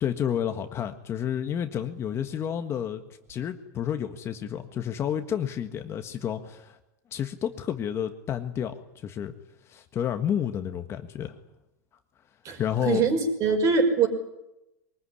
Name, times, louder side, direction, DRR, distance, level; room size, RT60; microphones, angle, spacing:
voice 1, 0.0-3.0 3.3-6.8 7.1-9.3 9.7-11.3 12.6-13.0, left 9 dB, 30° left, 7 dB, 1.5 m, -30 dB
voice 2, 12.5-14.1, right 4 dB, 35° right, 6 dB, 5.4 m, -23 dB
23.5 x 20.0 x 10.0 m, 0.92 s
supercardioid pair, 140°, 9 cm